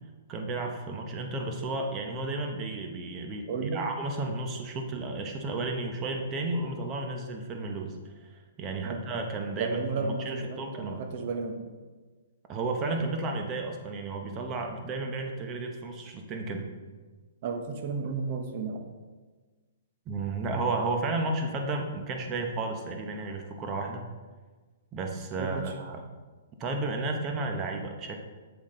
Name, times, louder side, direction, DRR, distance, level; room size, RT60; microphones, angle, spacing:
voice 1, 0.3-11.0 12.5-16.7 20.1-24.0 24.9-26.0 26.6-28.2, right 2 dB, 25° right, 3 dB, 1.0 m, -33 dB
voice 2, 3.5-3.9 8.8-9.1 9.6-11.7 17.4-18.9 25.4-25.7, right 4 dB, 45° right, 5 dB, 1.1 m, -33 dB
7.4 x 7.3 x 3.8 m, 1.4 s
hypercardioid pair, 150°, 0 cm